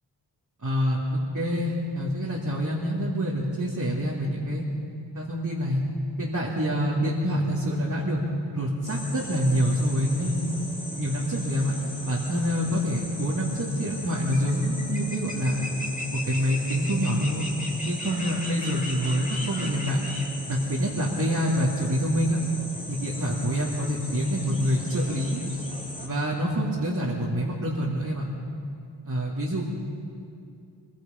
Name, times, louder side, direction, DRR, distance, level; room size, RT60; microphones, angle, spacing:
voice 1, 0.6-4.6 5.1-5.8 6.2-8.2 8.5-10.5 11.0-11.7 12.0-15.6 16.1-17.5 17.8-20.0 20.5-22.4 22.9-25.4 26.0-28.3 29.0-29.6, equal, 45° right, -5 dB, 2.8 m, -26 dB
sound 1, 8.8-26.1, left 1 dB, 15° left, 2.9 m, -37 dB
25.0 x 22.5 x 5.3 m, 2.4 s
wide cardioid pair, 110°, 45 cm